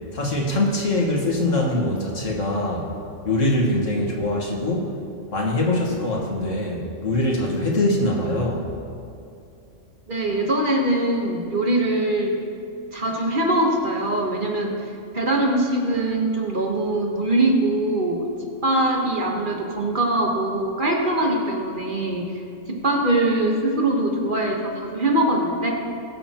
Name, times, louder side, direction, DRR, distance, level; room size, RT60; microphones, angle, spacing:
voice 1, 0.1-2.9 3.2-5.0 5.3-8.7, left 1 dB, 70° left, -2 dB, 1.9 m, -23 dB
voice 2, 10.1-12.4 12.9-22.3 22.7-25.7, right 1 dB, 40° right, 0 dB, 1.3 m, -22 dB
20.5 x 7.2 x 2.9 m, 2.5 s
omnidirectional pair, 1.4 m